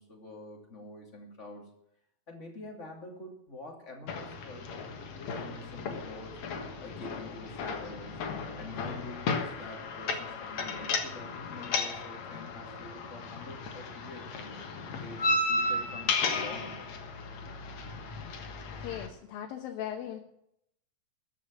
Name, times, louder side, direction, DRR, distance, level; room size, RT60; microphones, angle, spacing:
voice 1, 0.0-1.7 2.3-4.8 5.2-6.4 6.8-8.2 8.6-14.6 15.0-16.9, left 2 dB, 20° left, 1 dB, 2.7 m, -46 dB
sound 1, 4.1-19.1, left 3 dB, 60° left, 2.6 m, -35 dB
voice 2, 18.8-20.2, left 10 dB, 90° left, 2 dB, 2.9 m, -38 dB
14.0 x 7.5 x 8.6 m, 0.76 s
omnidirectional pair, 4.0 m